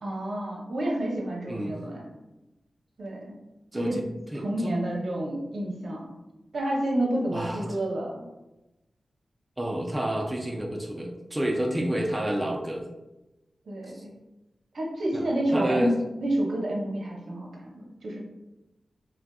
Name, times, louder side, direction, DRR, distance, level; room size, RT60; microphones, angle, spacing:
voice 1, 0.0-2.0 3.0-3.3 3.7-4.0 4.3-6.2 6.5-8.3 13.7-14.1 14.7-15.9 16.2-18.2, right 1 dB, 70° right, -2 dB, 0.7 m, -29 dB
voice 2, 1.5-1.8 3.7-4.0 4.3-4.8 7.3-7.6 9.6-12.8 13.9-14.0 15.1-15.3 15.5-15.9, right 1 dB, 15° right, -1 dB, 0.4 m, -29 dB
3.4 x 2.4 x 2.3 m, 0.98 s
wide cardioid pair, 90°, 0 cm